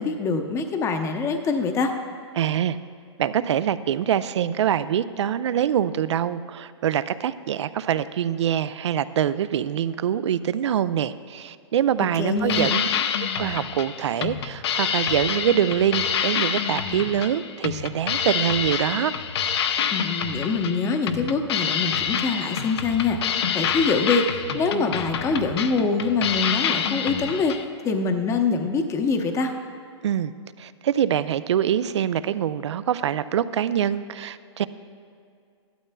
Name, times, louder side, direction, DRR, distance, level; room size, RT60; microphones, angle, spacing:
voice 1, 0.0-1.9 12.2-12.7 19.9-23.2 23.5-29.5, left 4 dB, 20° left, 5 dB, 0.7 m, -24 dB
voice 2, 2.4-2.8 3.2-12.9 13.4-19.1 30.0-30.3 30.6-34.7, right 9 dB, 70° right, 15 dB, 0.4 m, -24 dB
sound 1, 12.4-27.6, left 7 dB, 60° left, 0.7 m, -27 dB
14.0 x 12.0 x 2.2 m, 2.4 s
hypercardioid pair, 125°, 15 cm